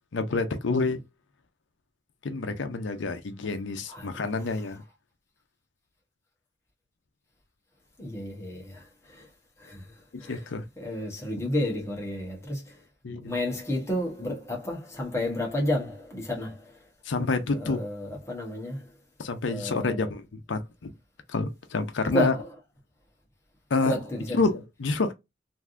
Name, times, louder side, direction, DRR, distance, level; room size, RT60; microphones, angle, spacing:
voice 1, 0.1-1.0 2.2-4.8 10.3-10.6 13.0-13.3 17.1-17.8 19.2-20.9 21.3-22.3 23.7-24.0 24.3-25.1, left 3 dB, 90° left, 0.6 m, -28 dB
voice 2, 3.9-4.2 8.0-9.3 9.6-9.9 10.2-10.4 10.8-12.8 13.2-16.7 17.5-18.8 19.4-20.1 22.1-22.5 23.8-24.4, left 1 dB, 15° left, 1.0 m, -31 dB
3.3 x 2.6 x 2.4 m
head